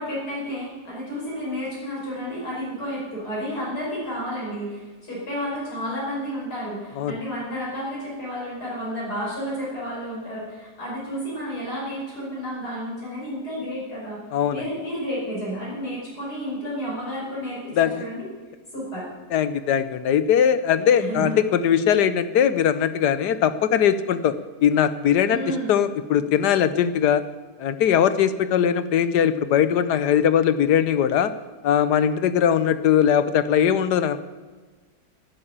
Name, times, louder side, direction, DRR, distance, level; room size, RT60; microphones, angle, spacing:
voice 1, 0.0-14.2 14.5-18.3 18.7-19.1 21.0-21.4 25.3-25.7, equal, 75° left, -6 dB, 6.1 m, -31 dB
voice 2, 14.3-14.6 17.8-18.1 19.3-24.3 24.6-27.2 27.6-31.3 31.6-34.2, left 9 dB, 90° left, 13 dB, 1.4 m, -20 dB
11.5 x 11.0 x 8.8 m, 1.4 s
omnidirectional pair, 1.7 m